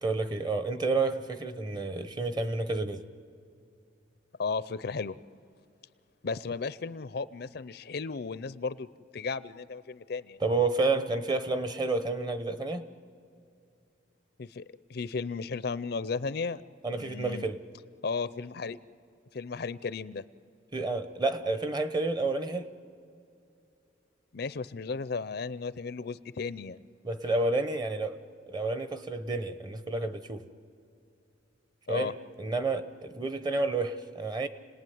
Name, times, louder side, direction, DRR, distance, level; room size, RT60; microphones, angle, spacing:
voice 1, 0.0-3.0 10.4-12.9 16.8-17.6 20.7-22.7 27.0-28.2 28.5-30.4 31.9-34.5, right 3 dB, 25° right, 11 dB, 1.0 m, -30 dB
voice 2, 4.4-5.2 6.2-8.9 9.1-10.4 14.4-14.6 14.9-16.6 16.9-17.5 18.0-18.8 19.3-20.2 24.3-26.9 31.9-32.1, left 4 dB, 60° left, 16 dB, 0.5 m, -34 dB
29.5 x 19.0 x 9.4 m, 2.5 s
head